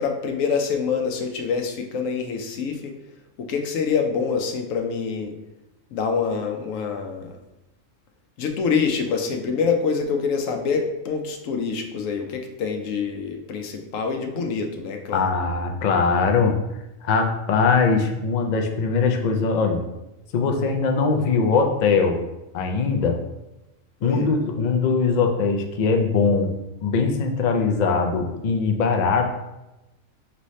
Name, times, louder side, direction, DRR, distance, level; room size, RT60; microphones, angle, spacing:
voice 1, 0.0-2.9 3.4-5.3 5.9-7.4 8.4-15.3 24.0-24.3, left 5 dB, 80° left, 4 dB, 1.0 m, -26 dB
voice 2, 15.1-16.6 17.0-19.8 20.3-22.2 22.5-23.2 24.0-26.5 26.8-29.3, left 4 dB, 60° left, 3 dB, 0.4 m, -21 dB
5.4 x 2.7 x 3.1 m, 0.97 s
omnidirectional pair, 1.3 m